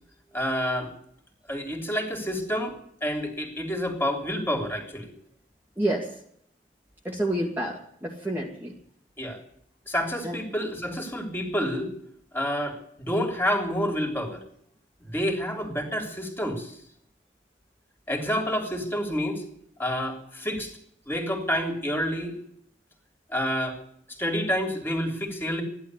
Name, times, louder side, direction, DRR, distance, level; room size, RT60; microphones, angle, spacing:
voice 1, 0.3-0.9 1.5-5.1 9.2-9.4 9.9-11.9 12.3-14.4 15.0-16.8 18.1-19.4 19.8-20.8 21.1-22.3 23.3-23.8 24.1-25.6, equal, 10° left, 2 dB, 3.3 m, -28 dB
voice 2, 5.8-6.2 7.0-8.7 10.2-10.4, right 1 dB, 10° right, -3 dB, 1.9 m, -29 dB
15.0 x 11.5 x 8.4 m, 0.67 s
head